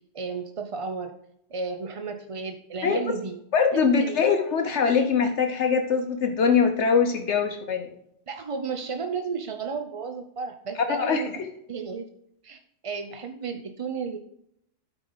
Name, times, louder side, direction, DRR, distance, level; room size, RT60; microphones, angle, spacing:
voice 1, 0.1-1.1 1.5-3.4 3.7-4.2 8.3-11.3 11.7-12.1 12.4-12.6 12.8-14.2, right 5 dB, 45° right, 6 dB, 0.4 m, -33 dB
voice 2, 3.5-7.9 10.9-11.2, left 6 dB, 65° left, 5 dB, 1.1 m, -22 dB
12.0 x 5.0 x 3.9 m, 0.74 s
omnidirectional pair, 1.3 m